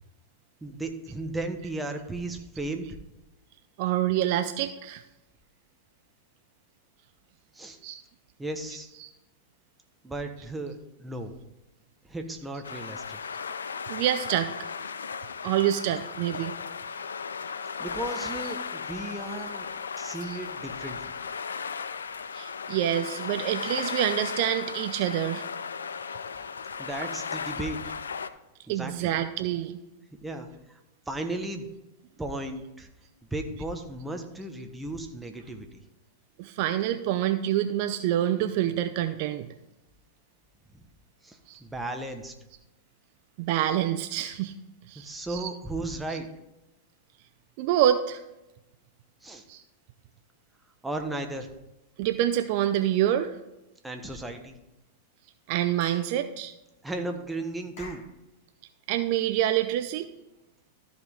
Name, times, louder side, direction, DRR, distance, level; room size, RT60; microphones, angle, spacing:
voice 1, 0.6-2.9 7.5-7.8 8.4-8.9 10.0-11.3 12.1-13.2 17.8-19.7 20.0-21.1 26.8-27.8 28.7-29.1 30.1-30.8 31.1-31.7 32.2-32.9 33.3-35.8 41.2-42.3 44.9-46.3 49.2-49.4 50.8-51.5 53.8-54.5 56.8-58.0, right 2 dB, 10° right, 4 dB, 1.2 m, -35 dB
voice 2, 3.8-5.0 7.8-8.0 8.9-9.1 13.9-14.5 15.4-16.5 18.4-18.5 20.2-20.4 22.3-25.4 28.7-29.8 36.4-39.5 41.5-41.6 43.4-44.5 44.9-45.5 46.1-46.2 47.6-48.2 49.5-49.6 52.0-53.3 55.5-56.5 58.9-60.1, right 12 dB, 55° right, 10 dB, 0.5 m, -27 dB
sound 1, 12.6-28.3, left 6 dB, 80° left, 0.4 m, -36 dB
Clapping / Chirp tweet, 55.8-56.1 57.8-58.1, left 3 dB, 60° left, 2.8 m, -45 dB
14.0 x 5.2 x 3.7 m, 0.95 s
hypercardioid pair, 95°, 0 cm